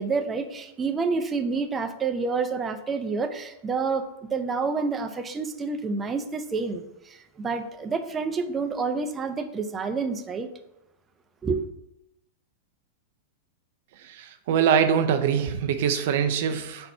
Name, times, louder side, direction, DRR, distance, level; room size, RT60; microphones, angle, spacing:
voice 1, 0.0-10.5 11.4-11.6, right 4 dB, 20° right, 7 dB, 0.6 m, -28 dB
voice 2, 14.1-16.9, right 8 dB, 65° right, 7 dB, 0.5 m, -23 dB
4.4 x 4.1 x 5.4 m, 0.86 s
hypercardioid pair, 110°, 0 cm